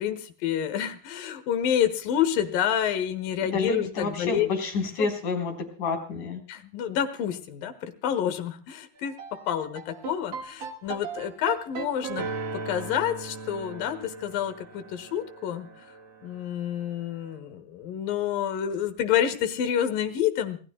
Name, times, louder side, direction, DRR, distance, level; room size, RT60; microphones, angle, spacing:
voice 1, 0.0-4.5 5.0-5.1 6.5-12.3 12.5-15.7 16.2-20.6, left 10 dB, 75° left, 9 dB, 3.0 m, -28 dB
voice 2, 3.5-6.4, left 4 dB, 60° left, 3 dB, 5.3 m, -29 dB
sound 1, 9.0-17.2, right 5 dB, 85° right, 1.0 m, -38 dB
28.0 x 17.0 x 2.2 m, 0.39 s
omnidirectional pair, 4.2 m